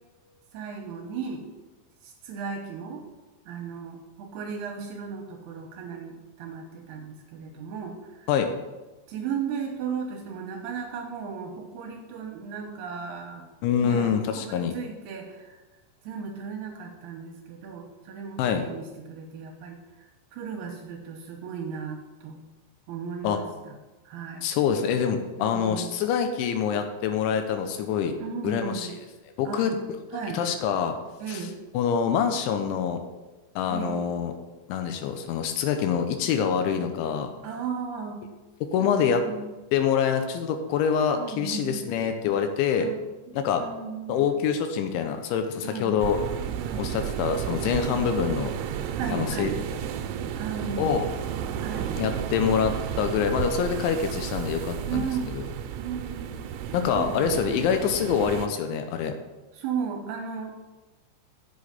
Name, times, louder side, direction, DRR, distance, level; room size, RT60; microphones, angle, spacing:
voice 1, 0.5-1.4 2.0-3.0 3.5-8.4 9.1-13.5 13.8-15.5 16.0-19.8 20.3-22.4 22.9-23.8 24.1-24.5 25.4-26.0 28.2-28.9 29.4-29.7 30.1-30.4 31.2-31.6 33.7-34.1 37.4-38.2 38.8-39.5 41.1-41.9 42.8-43.0 43.3-44.3 45.6-46.0 46.6-46.9 48.9-49.6 50.4-51.2 51.6-52.0 54.9-55.3 55.8-56.4 56.9-57.7 59.5-60.8, right 6 dB, 75° right, 1 dB, 2.8 m, -35 dB
voice 2, 13.6-14.8 18.4-18.6 23.2-23.4 24.4-28.2 28.4-28.9 29.4-29.8 30.3-30.9 31.3-31.4 31.7-33.0 33.6-34.3 34.7-37.3 38.7-39.2 39.7-42.9 43.3-43.6 44.1-46.2 46.8-48.5 49.1-49.8 50.8-51.1 52.0-55.1 55.3-55.5 56.7-59.1, left 7 dB, 90° left, 6 dB, 3.2 m, -25 dB
sound 1, 46.0-58.5, right 9 dB, 90° right, 3.0 m, -32 dB
8.0 x 6.2 x 7.0 m, 1.1 s
omnidirectional pair, 5.3 m